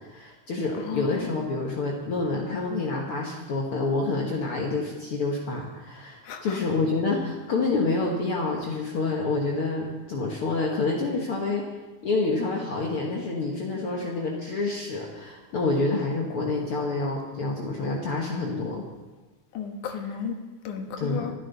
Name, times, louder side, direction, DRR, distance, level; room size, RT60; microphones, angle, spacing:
voice 1, 0.0-11.7 12.0-18.8 21.0-21.3, left 3 dB, 55° left, -1 dB, 2.1 m, -28 dB
voice 2, 0.9-1.3 6.2-6.6 19.5-20.4 20.6-21.3, left 7 dB, 85° left, 5 dB, 2.8 m, -33 dB
25.5 x 11.0 x 4.1 m, 1.2 s
omnidirectional pair, 3.4 m